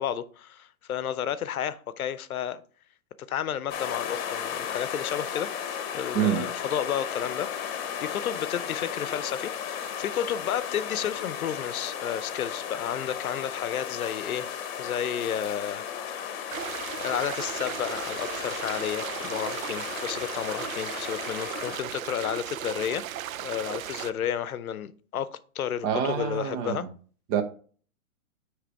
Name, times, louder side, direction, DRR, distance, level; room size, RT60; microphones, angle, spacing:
voice 1, 0.0-2.6 3.3-5.5 5.9-16.7 17.0-23.0 23.4-26.8, left 9 dB, 85° left, 0.6 m, -32 dB
sound 1, 3.7-21.8, left 8 dB, 45° left, 1.0 m, -35 dB
voice 2, 6.1-6.4 25.8-26.9 27.3-27.4, right 8 dB, 30° right, 0.8 m, -26 dB
sound 2, 16.5-24.1, right 11 dB, 70° right, 0.6 m, -36 dB
9.5 x 3.4 x 3.4 m
hypercardioid pair, 125°, 42 cm